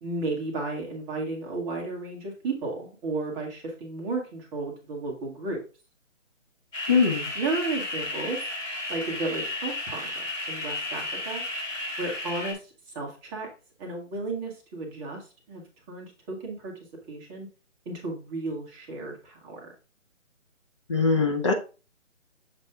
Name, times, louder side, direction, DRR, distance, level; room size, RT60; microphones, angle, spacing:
voice 1, 0.0-5.6 7.3-8.4 8.9-11.4 12.0-13.5 13.8-16.7 17.1-17.5 17.9-19.7, right 3 dB, 10° right, -1 dB, 0.9 m, -33 dB
sound 1, 6.7-12.5, left 2 dB, 75° left, 3.1 m, -33 dB
voice 2, 6.9-7.3 20.9-21.5, left 4 dB, 25° left, 2 dB, 0.6 m, -22 dB
6.8 x 4.0 x 3.5 m, 0.33 s
figure-of-eight pair, 145°, 38 cm